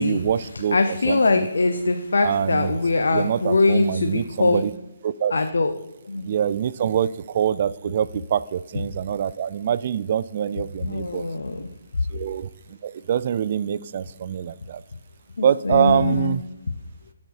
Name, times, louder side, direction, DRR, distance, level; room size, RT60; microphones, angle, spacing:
voice 1, 0.0-0.8 1.1-1.5 2.2-2.8 3.1-4.7 5.0-5.4 6.2-11.3 12.1-12.5 12.8-14.8 15.4-16.4, right 9 dB, 45° right, 17 dB, 0.3 m, -24 dB
voice 2, 0.7-4.6 5.3-5.7 6.0-6.4 10.8-11.7 15.4-16.4, left 3 dB, 80° left, 7 dB, 0.6 m, -22 dB
10.5 x 4.3 x 4.6 m, 0.87 s
hypercardioid pair, 150°, 0 cm